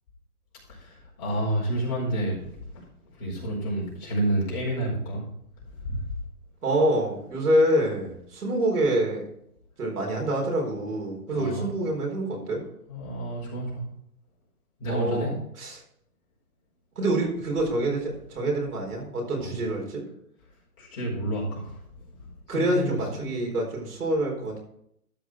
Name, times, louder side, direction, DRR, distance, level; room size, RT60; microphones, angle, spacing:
voice 1, 0.7-2.5 2.7-2.8 3.2-5.2 5.7-6.0 11.3-11.7 12.9-13.8 14.8-15.3 19.4-19.5 20.8-21.8 22.1-23.2, right 1 dB, 25° left, -5 dB, 4.5 m, -30 dB
voice 2, 6.6-9.2 9.8-12.6 14.9-15.8 17.0-20.0 22.5-24.6, right 1 dB, 80° right, 0 dB, 4.5 m, -26 dB
12.5 x 5.3 x 4.7 m, 0.73 s
hypercardioid pair, 155°, 45 cm